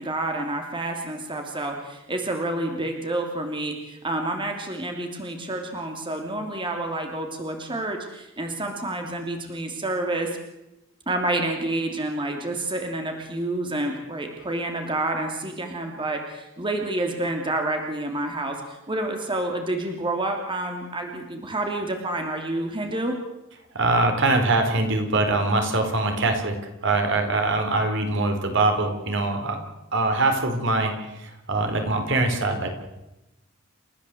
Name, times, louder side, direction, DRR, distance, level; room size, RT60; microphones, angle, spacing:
voice 1, 0.0-10.3 11.1-23.2, right 2 dB, 25° right, 3 dB, 2.9 m, -29 dB
voice 2, 23.7-26.6 26.8-29.6 29.9-32.7, right 2 dB, 65° right, 5 dB, 4.3 m, -23 dB
29.5 x 15.5 x 7.8 m, 0.94 s
head